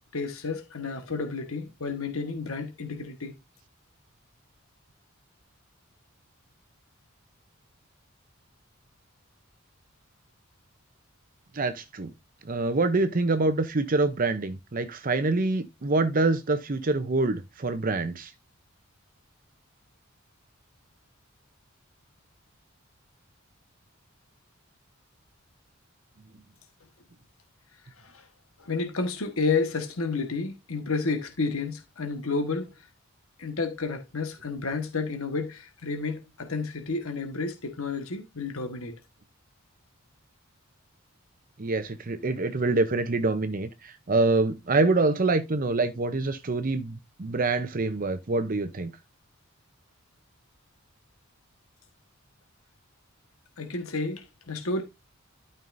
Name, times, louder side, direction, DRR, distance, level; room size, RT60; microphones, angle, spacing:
voice 1, 0.1-3.3 28.0-28.3 28.6-32.7 33.4-39.0 53.6-54.8, left 4 dB, 85° left, 1.4 m, -31 dB
voice 2, 11.5-12.1 12.5-18.3 41.6-48.9, right 3 dB, 40° right, 0.7 m, -26 dB
12.5 x 5.5 x 2.6 m
head